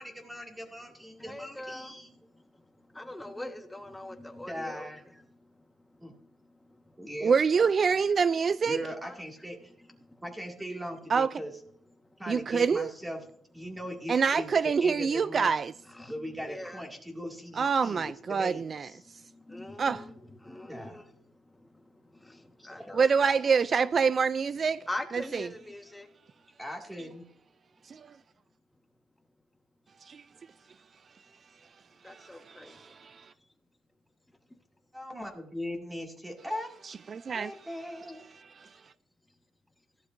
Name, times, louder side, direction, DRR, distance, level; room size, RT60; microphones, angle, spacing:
voice 1, 0.0-2.1 4.5-5.0 6.0-6.1 7.0-7.3 8.6-9.6 10.2-11.5 12.2-13.2 13.5-15.5 16.1-19.0 20.7-21.0 22.6-22.9 26.6-27.2 34.9-36.7 37.3-38.3, equal, 10° right, 2.1 m, -39 dB
voice 2, 1.1-7.2 8.8-10.4 10.7-10.8 12.0-12.2 13.6-13.8 15.8-16.9 19.0-23.3 24.9-26.1 26.4-26.5 28.7-28.8 32.0-33.0 33.4-33.5 34.5-34.6, left 1 dB, 10° left, 1.3 m, -44 dB
voice 3, 7.2-8.8 11.1-11.3 12.3-12.9 14.1-15.7 17.6-18.9 19.8-20.0 22.9-24.8 25.3-25.4 27.8-28.1 30.0-30.2 32.0-33.3 37.1-37.7 38.3-38.8, right 5 dB, 45° right, 0.3 m, -26 dB
15.5 x 11.5 x 2.6 m
cardioid pair, 90°, 0 cm